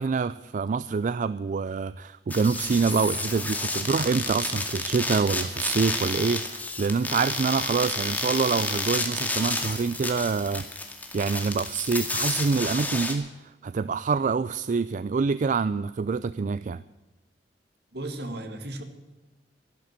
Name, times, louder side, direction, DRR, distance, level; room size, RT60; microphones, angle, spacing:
voice 1, 0.0-10.7 11.1-16.8, right 5 dB, 45° right, 16 dB, 0.4 m, -26 dB
sound 1, 2.3-13.1, left 2 dB, 10° left, 2.1 m, -31 dB
voice 2, 17.9-18.8, right 1 dB, 65° right, 6 dB, 2.1 m, -35 dB
13.0 x 12.0 x 7.4 m, 1.2 s
head